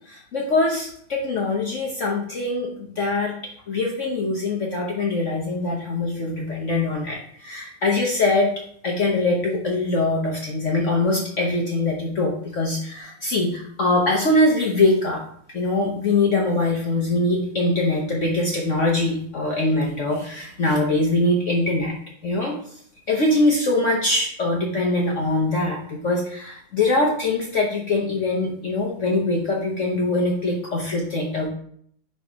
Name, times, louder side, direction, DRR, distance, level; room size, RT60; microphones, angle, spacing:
voice 1, 0.1-3.3 3.7-8.5 8.8-15.2 15.5-21.9 22.2-22.6 23.1-31.5, left 2 dB, 50° left, -2 dB, 0.9 m, -23 dB
5.3 x 4.4 x 4.6 m, 0.63 s
omnidirectional pair, 2.3 m